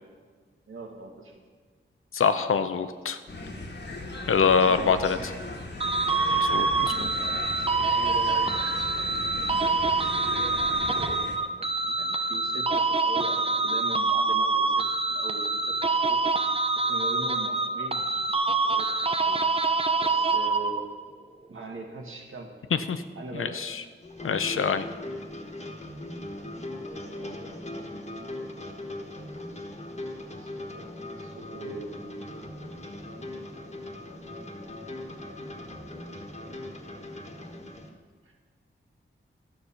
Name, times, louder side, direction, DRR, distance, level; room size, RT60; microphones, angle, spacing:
voice 1, 0.7-1.4 4.7-5.2 6.8-7.3 7.9-9.2 9.7-9.9 10.9-11.2 11.5-16.2 16.8-19.5 20.0-21.0 21.5-22.6 23.2-23.7 24.9-25.1 27.1-28.0 30.3-30.8 31.2-32.5 38.2-38.3, right 3 dB, 80° right, 2 dB, 1.6 m, -42 dB
voice 2, 2.1-3.2 4.3-5.2 6.3-7.1 22.9-23.0 23.4-23.8 24.2-24.8, left 6 dB, 85° left, 10 dB, 0.7 m, -24 dB
sound 1, 3.3-11.4, left 2 dB, 55° left, 1.4 m, -38 dB
sound 2, 5.8-21.0, right 3 dB, 30° right, 0.7 m, -26 dB
sound 3, 24.0-37.9, left 1 dB, 30° left, 1.4 m, -39 dB
12.5 x 6.6 x 5.7 m, 1.6 s
wide cardioid pair, 65°, 21 cm